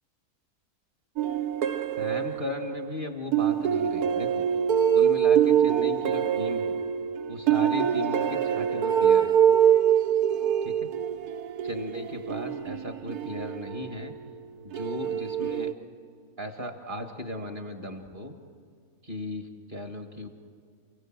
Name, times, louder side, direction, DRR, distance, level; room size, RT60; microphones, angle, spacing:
sound 1, 1.2-2.9 3.3-14.2 14.7-15.7, right 9 dB, 75° right, 1.3 m, -24 dB
voice 1, 2.0-4.4 4.9-6.7 7.3-9.4 10.6-10.7 11.6-14.1 14.6-15.7 16.4-18.3 19.0-20.3, left 1 dB, 35° right, 5 dB, 1.7 m, -36 dB
29.0 x 17.0 x 7.5 m, 2.2 s
omnidirectional pair, 1.7 m